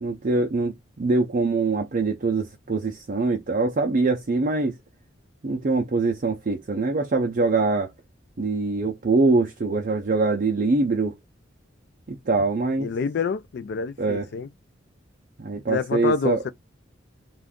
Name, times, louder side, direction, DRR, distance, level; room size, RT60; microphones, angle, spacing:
voice 1, 0.0-4.8 5.4-7.9 8.4-11.1 12.1-12.9 14.0-14.3 15.4-16.4, right 3 dB, 40° right, 0.4 m, -23 dB
voice 2, 12.8-14.5 15.7-16.5, left 5 dB, 55° left, 0.3 m, -27 dB
2.5 x 2.3 x 3.4 m
head